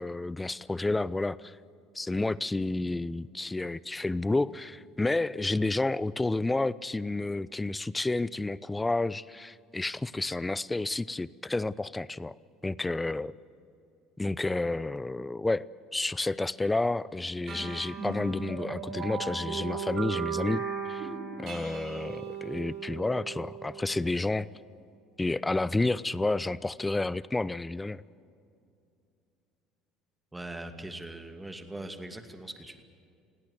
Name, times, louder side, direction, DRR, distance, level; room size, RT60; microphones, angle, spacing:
voice 1, 0.0-1.6 1.9-12.3 12.6-13.3 14.2-15.6 15.9-21.1 21.4-24.5 25.2-28.0, left 2 dB, 15° left, 20 dB, 0.6 m, -30 dB
sound 1, 17.5-24.3, right 6 dB, 50° right, 7.3 m, -37 dB
voice 2, 30.3-32.8, right 1 dB, 10° right, 7 dB, 2.4 m, -41 dB
27.5 x 18.0 x 8.1 m, 2.5 s
hypercardioid pair, 65°, 0 cm